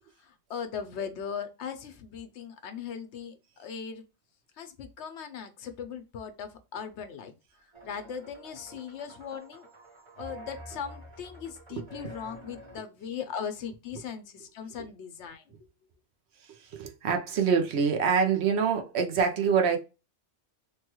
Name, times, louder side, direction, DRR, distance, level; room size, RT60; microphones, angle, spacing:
voice 1, 0.2-4.0 4.6-7.3 7.8-9.7 10.2-15.4, left 7 dB, 75° left, 0.9 m, -39 dB
sound 1, 7.7-12.8, right 1 dB, 25° right, 0.9 m, -48 dB
voice 2, 16.4-19.8, right 6 dB, 70° right, 0.9 m, -25 dB
3.3 x 2.3 x 2.9 m
omnidirectional pair, 1.2 m